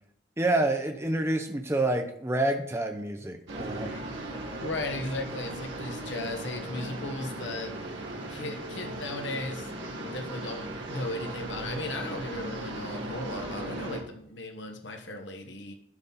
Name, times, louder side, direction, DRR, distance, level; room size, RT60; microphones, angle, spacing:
voice 1, 0.4-3.9, right 2 dB, 15° right, 5 dB, 0.7 m, -28 dB
sound 1, 3.5-14.0, right 1 dB, 80° right, 1.9 m, -37 dB
voice 2, 4.6-7.7 8.3-9.7 10.1-15.7, left 2 dB, 75° left, 4 dB, 1.3 m, -36 dB
12.0 x 4.2 x 5.6 m, 0.70 s
head